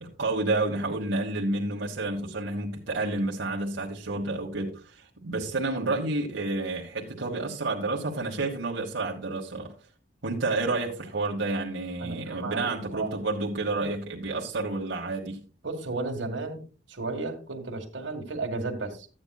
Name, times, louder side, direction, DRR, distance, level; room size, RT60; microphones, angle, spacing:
voice 1, 0.0-9.7 10.2-15.4, right 2 dB, 85° right, 1.4 m, -30 dB
voice 2, 12.0-12.7 12.9-13.1 15.6-16.6 16.9-19.1, right 3 dB, 70° right, 1.7 m, -33 dB
13.5 x 8.8 x 2.3 m
head